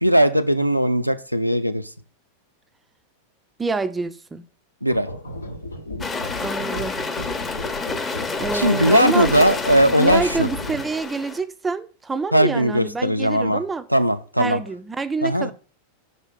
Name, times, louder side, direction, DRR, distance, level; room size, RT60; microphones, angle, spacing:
voice 1, 0.0-1.9 4.8-5.1 8.5-10.5 12.3-13.6 13.9-14.6 15.2-15.5, equal, 90° right, 0.4 m, -19 dB
voice 2, 3.6-4.4 6.4-7.0 8.4-9.3 10.0-13.8 14.4-15.5, right 4 dB, 15° right, 0.4 m, -27 dB
sound 1, 4.9-11.1, left 1 dB, 80° left, 0.8 m, -35 dB
sound 2, 6.0-11.4, left 3 dB, 15° left, 0.7 m, -29 dB
5.4 x 4.0 x 5.2 m
figure-of-eight pair, 90°, 0 cm